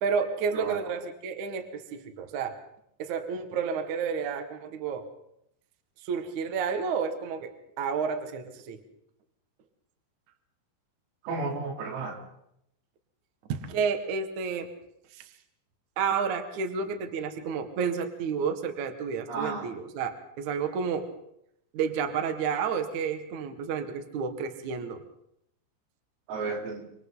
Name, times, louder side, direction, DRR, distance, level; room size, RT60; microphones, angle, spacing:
voice 1, 0.0-2.6 3.0-5.1 6.0-8.8 13.5-14.7 15.1-15.3 16.0-21.1 21.7-25.0, right 6 dB, 60° right, 7 dB, 2.1 m, -31 dB
voice 2, 11.2-12.2 19.3-19.7 26.3-26.9, right 4 dB, 85° right, 1 dB, 6.0 m, -32 dB
27.0 x 25.5 x 3.9 m, 0.77 s
omnidirectional pair, 5.9 m